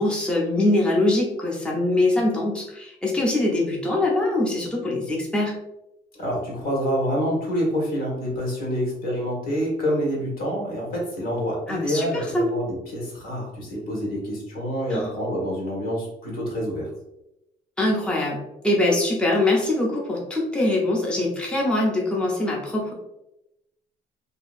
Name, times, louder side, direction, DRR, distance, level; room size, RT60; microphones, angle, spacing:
voice 1, 0.0-5.5 11.7-12.5 14.9-15.1 17.8-18.4 18.6-22.9, left 2 dB, 5° left, -3 dB, 0.7 m, -23 dB
voice 2, 6.1-16.9, equal, 60° left, -2 dB, 1.3 m, -27 dB
2.8 x 2.6 x 2.4 m, 0.88 s
cardioid pair, 110°, 17 cm